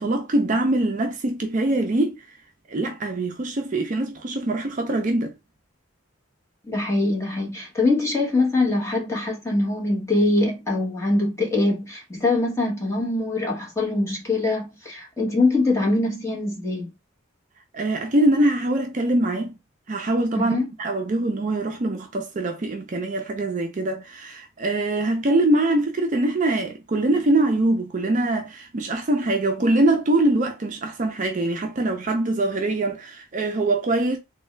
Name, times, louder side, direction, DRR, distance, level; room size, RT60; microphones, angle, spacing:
voice 1, 0.0-2.3 2.7-5.3 17.7-19.5 19.9-34.2, right 2 dB, 35° right, 0.4 m, -23 dB
voice 2, 6.6-16.9 20.3-20.7, left 2 dB, 15° left, 1.0 m, -23 dB
3.4 x 2.2 x 3.1 m
head